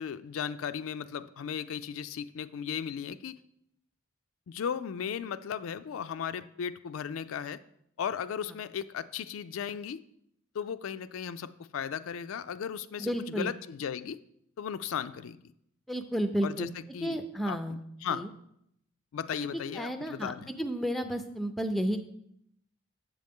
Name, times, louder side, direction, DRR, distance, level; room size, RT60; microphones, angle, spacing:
voice 1, 0.0-3.4 4.5-7.6 8.0-10.0 10.5-14.2 14.6-15.4 16.4-16.7 16.9-17.2 17.5-17.6 18.0-18.2 19.1-20.5, left 7 dB, 80° left, 12 dB, 0.4 m, -36 dB
voice 2, 13.0-13.5 15.9-16.7 17.0-17.8 18.1-18.3 19.8-20.3 20.6-22.0, equal, ahead, 7 dB, 0.4 m, -31 dB
7.6 x 7.4 x 3.6 m, 0.74 s
head